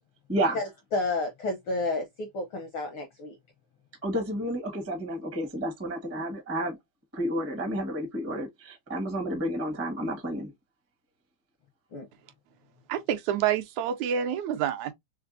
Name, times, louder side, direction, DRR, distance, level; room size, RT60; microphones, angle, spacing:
voice 1, 0.3-0.6 4.0-6.8 7.1-10.5, right 1 dB, 20° right, 0.3 m, -31 dB
voice 2, 0.9-3.4 11.9-12.1, left 2 dB, 70° left, 1.2 m, -31 dB
voice 3, 12.9-14.9, right 9 dB, 80° right, 1.9 m, -28 dB
4.9 x 3.3 x 2.6 m
omnidirectional pair, 3.3 m